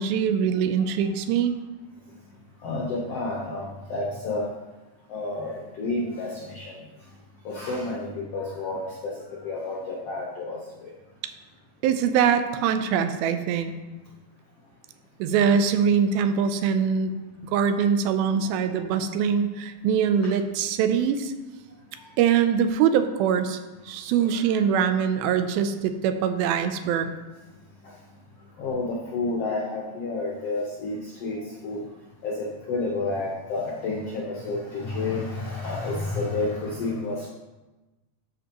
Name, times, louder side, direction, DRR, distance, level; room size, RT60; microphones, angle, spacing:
voice 1, 0.0-1.5 11.8-13.7 15.2-17.1 17.5-21.3 22.2-23.6 23.9-27.1, right 7 dB, 85° right, 9 dB, 2.5 m, -23 dB
voice 2, 2.6-4.5 5.1-6.8 7.4-10.9 22.0-22.1 24.3-24.4 27.8-27.9 28.6-31.8 32.2-37.3, left 2 dB, 85° left, -2 dB, 1.3 m, -30 dB
12.5 x 6.0 x 3.0 m, 1.1 s
omnidirectional pair, 4.3 m